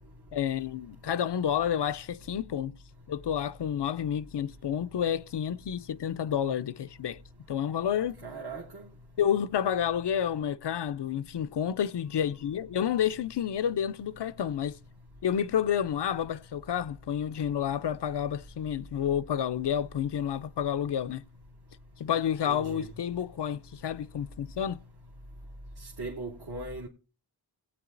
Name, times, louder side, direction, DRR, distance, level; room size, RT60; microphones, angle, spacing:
voice 1, 0.3-2.7 3.1-7.2 7.5-8.2 9.2-14.8 15.2-21.2 22.0-24.8, left 9 dB, 65° left, 0.5 m, -30 dB
voice 2, 8.2-8.9 22.5-22.9 25.8-26.9, right 2 dB, 60° right, 1.3 m, -39 dB
18.0 x 8.6 x 2.5 m
wide cardioid pair, 80°, 44 cm